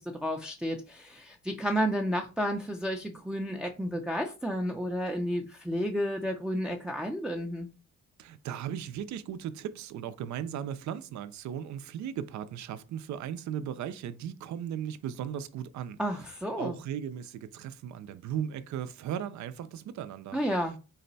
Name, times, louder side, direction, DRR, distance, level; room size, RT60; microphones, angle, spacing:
voice 1, 0.0-7.7 16.0-16.8 20.3-20.8, equal, 5° right, 0.5 m, -31 dB
voice 2, 8.2-16.0 16.6-20.4, right 9 dB, 70° right, 0.5 m, -37 dB
4.0 x 2.2 x 3.9 m
cardioid pair, 90°, 30 cm